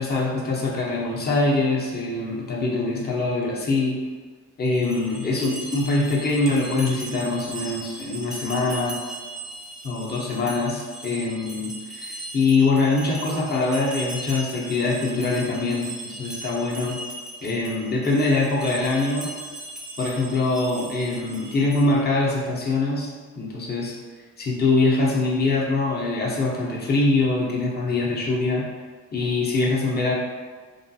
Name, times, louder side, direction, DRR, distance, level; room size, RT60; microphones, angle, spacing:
voice 1, 0.0-4.0 4.6-9.0 9.8-17.0 17.4-19.3 20.0-24.0 24.4-28.7 29.1-30.1, left 3 dB, 35° left, -3 dB, 0.7 m, -23 dB
sound 1, 4.6-22.1, right 1 dB, ahead, 0.5 m, -38 dB
3.0 x 2.3 x 2.7 m, 1.5 s
cardioid pair, 90°, 30 cm